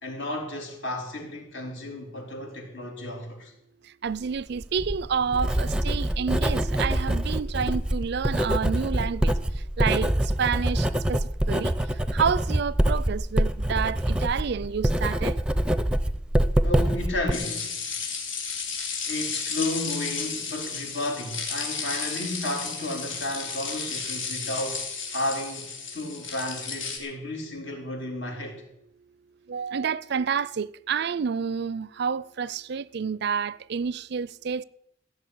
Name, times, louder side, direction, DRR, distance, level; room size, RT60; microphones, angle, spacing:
voice 1, 0.0-3.5 16.6-17.8 19.0-24.8 25.1-28.6, left 1 dB, 70° left, 3.9 m, -33 dB
voice 2, 4.0-9.3 9.8-10.1 10.4-11.7 12.1-15.4 29.5-34.6, right 6 dB, 60° right, 0.4 m, -29 dB
Writing, 4.6-17.3, right 1 dB, 5° right, 0.6 m, -25 dB
sound 1, 17.3-27.0, left 5 dB, 85° left, 3.1 m, -33 dB
15.5 x 6.8 x 9.8 m
head